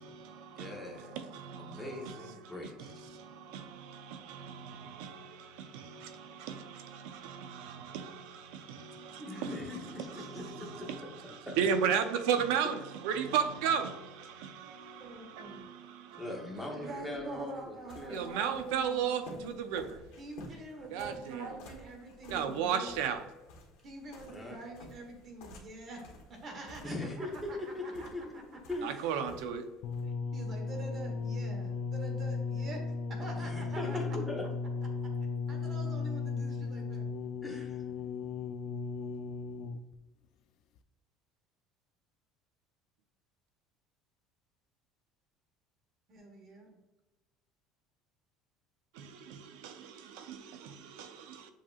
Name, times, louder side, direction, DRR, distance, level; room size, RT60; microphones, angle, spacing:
voice 1, 0.0-2.5 2.8-9.5 10.1-11.0 11.6-12.8 13.0-16.3 18.1-20.0 20.9-21.5 22.3-23.2 28.8-29.7 48.9-51.5, right 7 dB, 85° right, 0.6 m, -35 dB
voice 2, 0.5-1.2 1.6-2.9 9.2-11.6 12.6-12.8 16.2-18.3 24.3-24.6 26.8-29.1 33.4-34.5 37.4-37.8, left 2 dB, ahead, 1.0 m, -41 dB
voice 3, 15.0-15.7 16.7-19.7 20.2-22.9 23.8-26.0 26.3-28.6 30.0-32.8 33.1-34.0 35.5-37.1 46.1-46.8, right 2 dB, 35° right, 1.2 m, -45 dB
sound 1, 17.1-30.1, left 2 dB, 80° left, 1.3 m, -54 dB
sound 2, 29.8-39.9 40.8-40.9, left 4 dB, 55° left, 0.3 m, -36 dB
7.2 x 2.9 x 2.4 m
cardioid pair, 155°, 0 cm